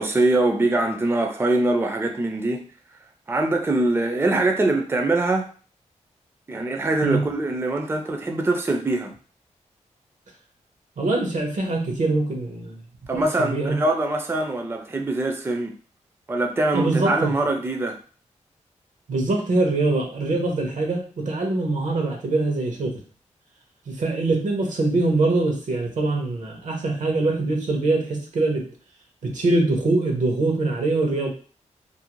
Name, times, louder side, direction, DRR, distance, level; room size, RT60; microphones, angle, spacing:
voice 1, 0.0-2.7 3.3-5.5 6.5-9.1 13.1-15.8 16.3-18.0, right 2 dB, 20° right, 4 dB, 0.4 m, -23 dB
voice 2, 11.0-13.8 16.7-17.3 19.1-23.0 23.9-28.7 29.2-31.3, right 2 dB, 75° right, 2 dB, 0.8 m, -23 dB
2.5 x 2.1 x 2.9 m, 0.40 s
cardioid pair, 65°, 13 cm